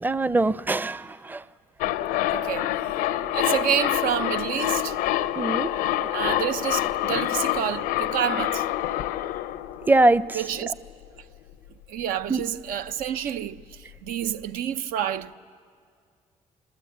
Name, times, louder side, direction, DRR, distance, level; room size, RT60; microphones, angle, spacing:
voice 1, 0.0-1.4 5.4-5.7 9.9-10.2 12.3-12.4, right 2 dB, 15° right, 0.6 m, -22 dB
sound 1, 1.8-10.6 10.9-11.0, left 13 dB, 90° left, 0.6 m, -27 dB
voice 2, 2.3-2.7 3.3-5.0 6.1-8.6 10.3-10.7 11.9-15.4, right 9 dB, 80° right, 0.7 m, -28 dB
27.5 x 20.5 x 8.0 m
supercardioid pair, 60°, 15 cm